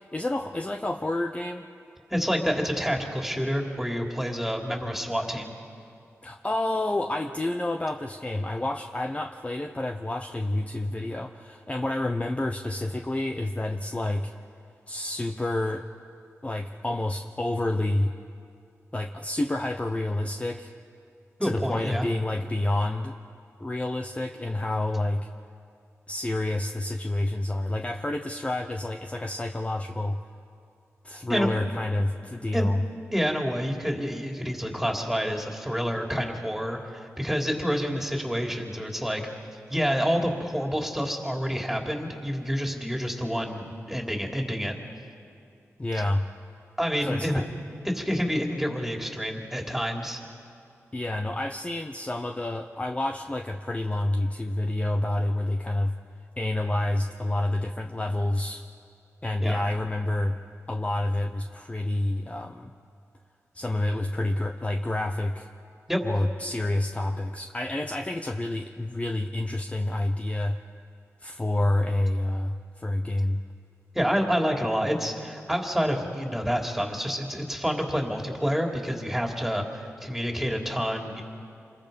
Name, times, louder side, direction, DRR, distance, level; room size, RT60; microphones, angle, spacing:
voice 1, 0.0-1.7 6.2-14.3 14.9-15.9 16.4-18.1 18.9-20.7 21.4-23.1 23.6-25.3 26.1-30.2 31.0-32.8 45.8-46.2 47.0-47.4 50.9-55.9 56.4-58.6 59.2-60.4 60.7-62.7 63.5-65.5 66.0-70.6 71.2-73.4, left 1 dB, 25° left, 5 dB, 0.9 m, -28 dB
voice 2, 2.1-5.5 21.4-22.1 31.3-31.5 32.5-32.7 33.1-39.2 39.7-44.7 46.8-47.4 47.8-50.2 59.4-59.6 65.9-66.0 73.9-81.2, equal, 5° right, 1 dB, 3.3 m, -28 dB
27.5 x 22.0 x 5.3 m, 2.5 s
cardioid pair, 55°, 5 cm